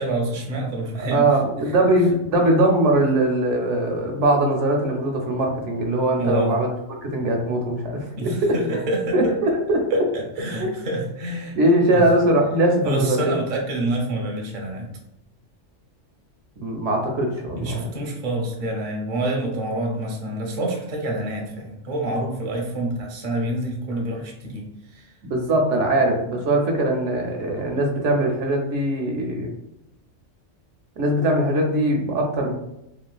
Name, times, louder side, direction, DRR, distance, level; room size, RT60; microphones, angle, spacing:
voice 1, 0.0-1.3 1.7-1.8 6.2-6.5 8.2-9.3 9.9-11.6 11.9-12.1 12.8-14.9 17.5-25.1, right 1 dB, 50° right, 0 dB, 0.6 m, -27 dB
voice 2, 1.1-6.7 7.0-8.8 9.1-10.1 10.6-10.7 11.6-13.4 16.6-18.1 25.3-29.5 31.0-32.5, right 1 dB, 75° right, 2 dB, 0.9 m, -21 dB
3.1 x 2.4 x 2.3 m, 0.84 s
omnidirectional pair, 1.3 m